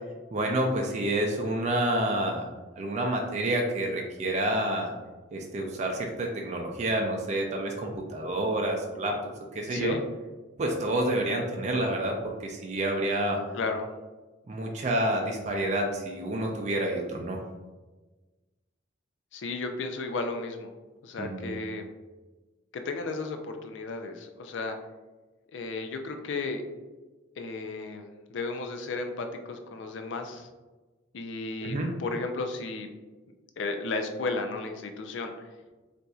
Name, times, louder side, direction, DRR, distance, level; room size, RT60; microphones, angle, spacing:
voice 1, 0.3-2.5 2.8-4.9 5.3-9.2 9.5-10.0 10.6-13.4 14.5-17.4 21.2-21.6 31.6-31.9, right 1 dB, 40° right, 1 dB, 0.4 m, -28 dB
voice 2, 13.5-13.9 19.3-20.7 21.0-21.8 22.7-24.8 25.5-26.6 27.4-30.5 31.1-32.9 33.6-35.5, left 3 dB, 75° left, 6 dB, 0.4 m, -34 dB
4.1 x 2.5 x 2.3 m, 1.2 s
head